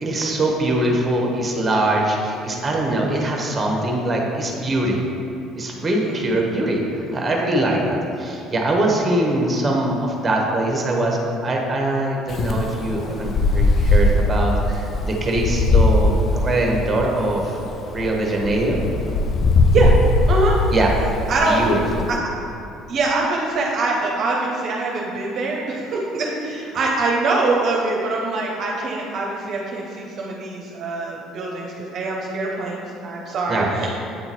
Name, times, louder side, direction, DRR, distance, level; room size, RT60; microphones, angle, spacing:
voice 1, 0.0-5.0 5.5-18.8 20.7-22.1 33.5-33.7, right 1 dB, 20° right, 0 dB, 1.0 m, -22 dB
voice 2, 6.0-6.4 19.7-19.9 20.3-20.6 21.3-21.6 22.1-22.2 22.9-34.0, right 3 dB, 55° right, -2 dB, 0.7 m, -24 dB
Wind, 12.3-22.2, left 2 dB, 45° left, 0.4 m, -20 dB
8.0 x 2.9 x 4.2 m, 2.7 s
supercardioid pair, 95°, 0 cm